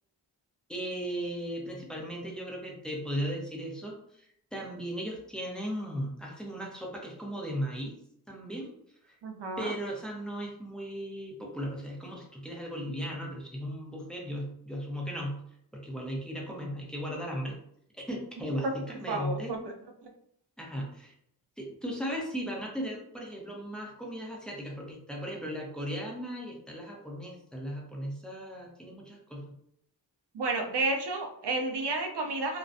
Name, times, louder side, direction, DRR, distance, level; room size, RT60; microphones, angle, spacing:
voice 1, 0.7-7.9 8.3-8.7 9.0-9.2 9.6-15.4 15.7-17.6 18.0-19.5 20.6-21.1 21.6-29.6, equal, ahead, -2 dB, 0.7 m, -37 dB
voice 2, 9.2-9.7 18.6-18.7 19.1-19.6 20.0-20.1 30.3-32.6, right 2 dB, 75° right, 3 dB, 0.5 m, -31 dB
2.3 x 2.1 x 2.6 m, 0.70 s
cardioid pair, 45°, 41 cm